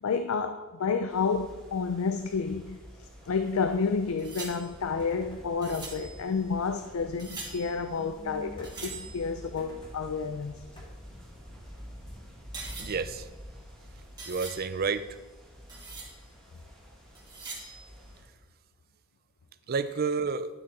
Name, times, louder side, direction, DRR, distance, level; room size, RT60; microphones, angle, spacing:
voice 1, 0.0-10.6, left 5 dB, 80° left, 0.5 m, -30 dB
sound 1, 1.1-18.2, equal, 5° left, 2.9 m, -49 dB
sound 2, 4.2-9.8 11.1-15.3 15.6-16.3 17.1-18.1, right 3 dB, 20° right, 2.2 m, -45 dB
sound 3, 4.7-14.0, equal, 25° left, 1.9 m, -53 dB
voice 2, 12.8-13.3 14.3-15.1 19.7-20.5, right 5 dB, 45° right, 0.5 m, -30 dB
11.0 x 6.3 x 4.2 m
head